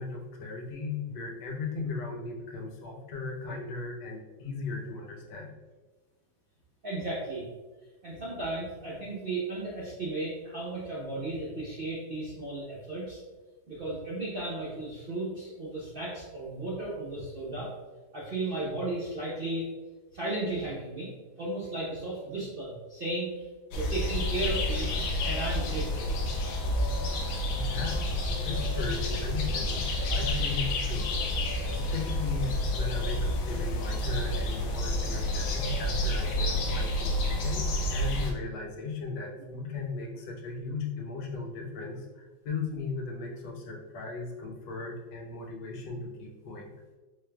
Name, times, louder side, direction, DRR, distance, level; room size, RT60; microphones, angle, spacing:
voice 1, 0.0-5.5 27.3-29.8 30.1-31.1 31.7-37.6 37.9-46.7, left 4 dB, 90° left, 0 dB, 1.4 m, -37 dB
voice 2, 6.8-7.4 8.0-13.2 13.7-17.7 18.1-19.7 20.1-21.1 21.4-23.5 23.7-24.9 25.2-26.2, right 2 dB, 60° right, -8 dB, 0.6 m, -34 dB
sound 1, 23.7-38.3, left 1 dB, 70° left, 1.1 m, -29 dB
4.2 x 3.2 x 2.2 m, 1.2 s
omnidirectional pair, 2.0 m